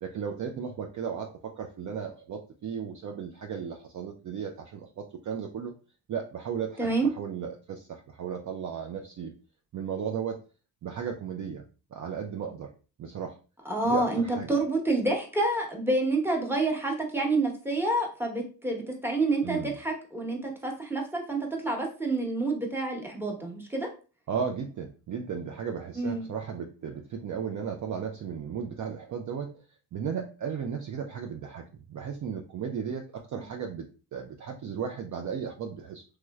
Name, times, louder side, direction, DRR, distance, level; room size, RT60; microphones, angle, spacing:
voice 1, 0.0-5.7 6.1-6.9 7.2-9.3 9.7-10.4 10.8-11.6 11.9-12.7 13.0-13.4 13.8-14.5 19.4-19.7 24.3-29.6 29.9-33.9 34.1-36.0, right 7 dB, 40° right, 3 dB, 0.5 m, -35 dB
voice 2, 6.8-7.1 13.6-23.9 26.0-26.3 33.3-33.4, right 2 dB, 5° right, 1 dB, 1.0 m, -28 dB
3.1 x 3.0 x 2.3 m, 0.35 s
cardioid pair, 75°, 45 cm